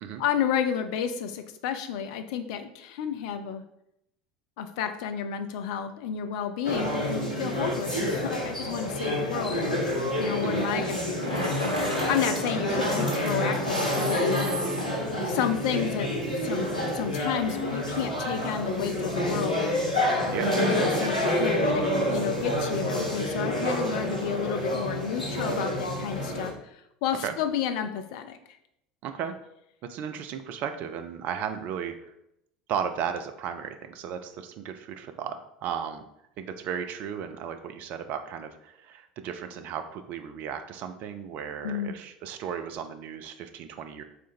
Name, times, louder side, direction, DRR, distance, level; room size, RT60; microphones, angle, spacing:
voice 1, 0.2-3.6 4.6-9.8 10.2-11.7 12.1-14.4 15.2-16.1 16.4-16.7 16.9-19.6 20.6-28.4 41.6-41.9, left 8 dB, 55° left, 8 dB, 0.4 m, -31 dB
sound 1, 6.6-26.5, left 1 dB, 85° left, 0.8 m, -28 dB
Bicycle, 11.0-13.8, equal, 85° right, 1.0 m, -35 dB
sound 2, 13.7-15.9, right 2 dB, 25° right, 1.4 m, -40 dB
voice 2, 29.0-29.3 29.8-32.1 32.7-36.0 36.4-44.0, right 8 dB, 45° right, 8 dB, 0.4 m, -35 dB
3.6 x 2.6 x 4.2 m, 0.80 s
figure-of-eight pair, 70°, 4 cm